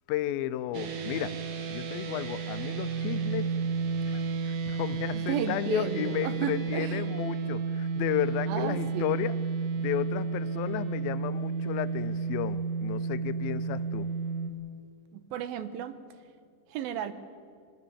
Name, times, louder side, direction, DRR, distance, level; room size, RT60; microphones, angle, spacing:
voice 1, 0.1-1.4 1.7-3.5 4.1-9.4 9.8-14.1, left 13 dB, 90° left, 15 dB, 2.5 m, -33 dB
sound 1, 0.7-14.5, right 5 dB, 60° right, 2.7 m, -32 dB
voice 2, 5.1-7.0 8.5-9.2 15.3-16.0 16.7-17.1, right 9 dB, 90° right, 12 dB, 2.9 m, -33 dB
22.5 x 20.0 x 7.0 m, 2.3 s
omnidirectional pair, 4.1 m